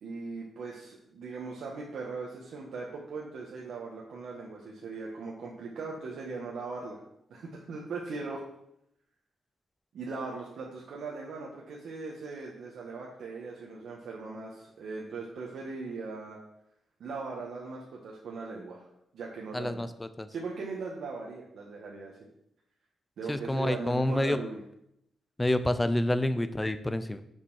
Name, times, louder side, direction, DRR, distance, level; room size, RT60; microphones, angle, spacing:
voice 1, 0.0-7.0 7.3-8.4 9.9-16.4 17.0-18.9 19.1-19.8 20.3-22.1 23.2-24.6, right 4 dB, 65° right, -3 dB, 1.6 m, -39 dB
voice 2, 19.5-20.3 23.3-24.4 25.4-27.2, left 1 dB, 10° left, 11 dB, 0.5 m, -28 dB
7.3 x 6.7 x 6.3 m, 0.78 s
wide cardioid pair, 180°, 0 cm